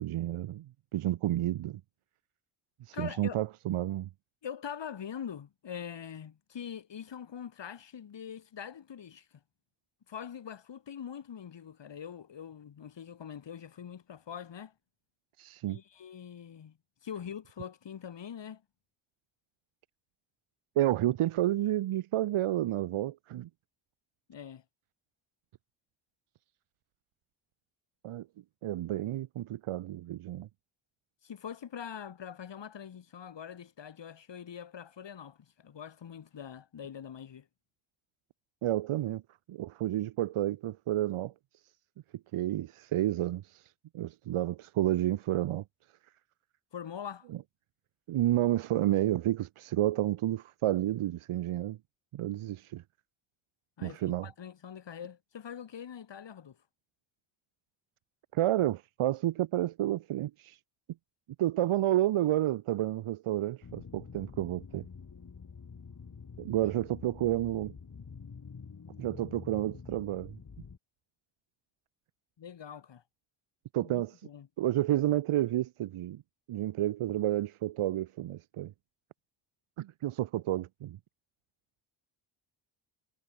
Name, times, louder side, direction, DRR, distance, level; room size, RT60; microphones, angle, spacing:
voice 1, 0.0-1.8 2.8-4.1 15.4-15.8 20.7-23.5 28.0-28.3 28.6-30.5 38.6-39.2 39.5-41.3 42.3-45.6 48.1-51.8 52.1-52.8 53.8-54.3 58.3-60.6 61.4-64.8 66.4-67.7 69.0-70.4 73.7-74.1 74.6-76.2 76.5-78.7 79.8-81.0, right 14 dB, 80° right, 1.6 m, -30 dB
voice 2, 2.9-3.4 4.4-9.3 10.1-14.7 15.6-16.8 17.0-18.6 24.3-24.6 31.2-37.5 46.7-47.3 53.8-56.6 72.4-73.0 73.8-74.5, left 8 dB, 60° left, 3.3 m, -43 dB
sound 1, 63.6-70.8, left 5 dB, 40° left, 3.2 m, -47 dB
cardioid pair, 60°, 49 cm